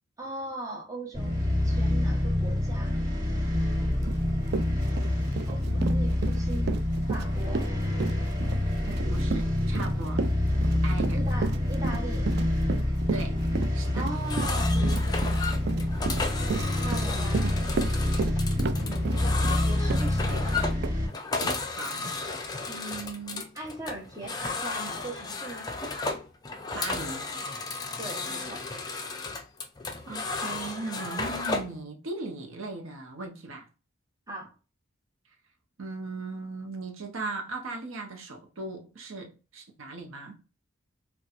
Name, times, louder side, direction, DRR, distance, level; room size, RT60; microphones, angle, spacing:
voice 1, 0.2-3.0 5.4-6.8 7.1-7.8 11.1-12.3 13.9-16.2 16.8-17.7 18.7-20.7 22.7-25.7 28.0-28.7 34.3-34.5, right 2 dB, 15° right, 0.9 m, -40 dB
sound 1, 1.1-21.1, left 1 dB, 35° right, 1.4 m, -27 dB
Run, 4.1-4.2 4.5-20.5 20.8-21.0 21.4-21.5, right 5 dB, 50° right, 0.3 m, -33 dB
voice 2, 9.1-10.2 10.8-11.2 13.1-13.5 13.7-14.1 21.8-22.2 26.7-27.3 30.1-33.7 35.8-40.4, right 3 dB, 80° right, 0.8 m, -38 dB
sound 2, 14.1-31.8, left 3 dB, 20° left, 0.4 m, -34 dB
4.1 x 2.3 x 2.4 m
head